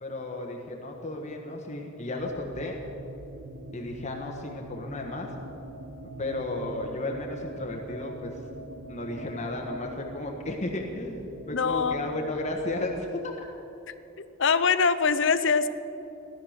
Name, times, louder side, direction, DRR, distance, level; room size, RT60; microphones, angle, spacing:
voice 1, 0.0-2.8 3.7-5.3 6.2-8.3 8.9-13.3, left 2 dB, 30° left, 1 dB, 1.3 m, -34 dB
sound 1, 2.2-13.0, right 1 dB, 60° right, 1.0 m, -43 dB
voice 2, 11.5-12.0 14.2-15.7, left 5 dB, 60° left, 12 dB, 0.7 m, -23 dB
16.5 x 12.0 x 6.5 m, 2.9 s
head